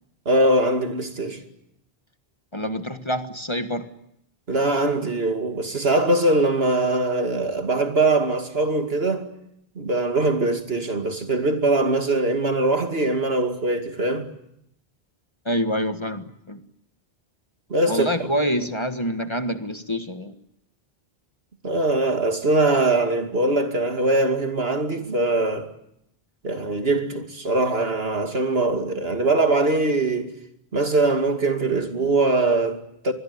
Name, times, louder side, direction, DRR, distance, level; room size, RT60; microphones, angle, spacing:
voice 1, 0.3-1.4 4.5-9.3 9.8-14.3 17.7-18.3 21.6-25.7 26.4-30.3 30.7-33.1, right 2 dB, 70° right, 2.7 m, -22 dB
voice 2, 2.5-3.9 15.4-16.6 17.9-20.3, equal, 25° left, 1.6 m, -26 dB
25.5 x 21.5 x 9.7 m
omnidirectional pair, 1.1 m